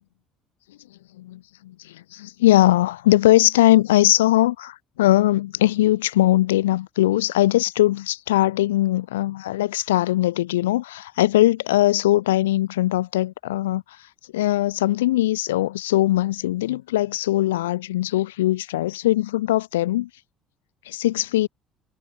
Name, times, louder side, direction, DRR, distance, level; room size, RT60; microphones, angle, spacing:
voice 1, 1.2-14.1 14.3-20.1 20.9-21.5, left 15 dB, 70° left, 0.4 m, -20 dB
figure-of-eight pair, 55°, 0 cm